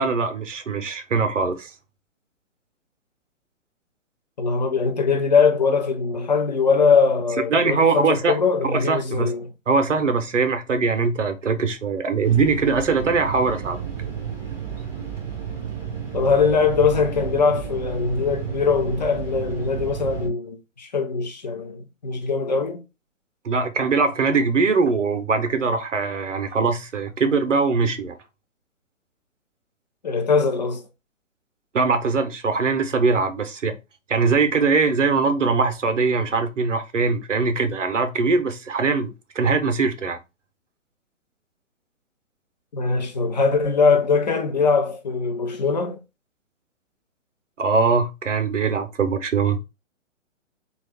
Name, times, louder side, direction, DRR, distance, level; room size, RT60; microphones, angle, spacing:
voice 1, 0.0-1.7 7.5-8.4 8.7-9.3 9.7-13.8 23.4-28.2 31.7-33.8 34.1-40.2 47.6-49.6, right 4 dB, 65° right, 0.7 m, -21 dB
voice 2, 4.4-9.5 16.1-22.8 30.0-30.8 42.7-46.0, left 5 dB, 35° left, 0.6 m, -21 dB
sound 1, 12.2-20.3, right 8 dB, 5° right, 0.6 m, -32 dB
3.1 x 2.4 x 3.4 m
figure-of-eight pair, 130°, 39 cm